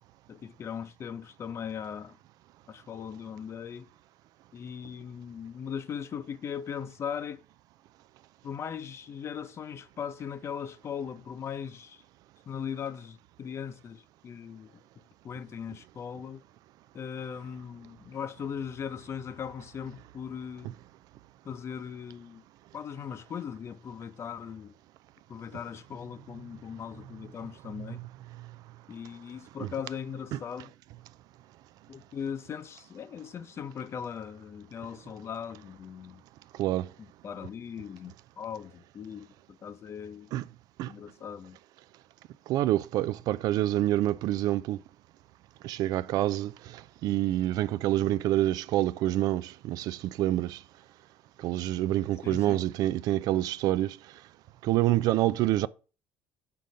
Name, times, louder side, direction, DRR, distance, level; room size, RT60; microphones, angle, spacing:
voice 1, 0.3-2.1 2.7-3.9 4.5-7.4 8.4-12.0 12.5-14.8 15.2-16.4 16.9-20.7 21.4-22.4 22.7-24.7 25.3-28.1 28.9-30.7 31.9-36.2 37.0-40.3 40.9-41.6 52.2-52.6, left 7 dB, 40° left, 0.7 m, -39 dB
voice 2, 42.5-44.8 45.6-50.6 51.4-54.0 54.6-55.7, right 14 dB, 65° right, 0.4 m, -27 dB
6.6 x 3.9 x 5.5 m
cardioid pair, 110°, 7 cm